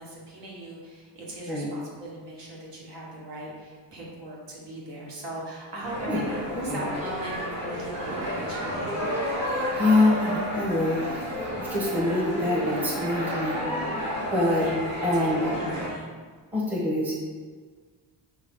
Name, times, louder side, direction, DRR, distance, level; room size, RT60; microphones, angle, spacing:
voice 1, 0.0-9.0 14.5-16.1, right 1 dB, 70° right, -4 dB, 1.3 m, -39 dB
sound 1, 5.8-15.9, equal, 35° right, 1.1 m, -31 dB
voice 2, 9.7-11.3 11.6-13.6 14.3-14.7 15.0-15.5 16.5-17.2, left 2 dB, 5° right, -5 dB, 0.7 m, -25 dB
5.0 x 2.7 x 3.5 m, 1.5 s
wide cardioid pair, 160°, 44 cm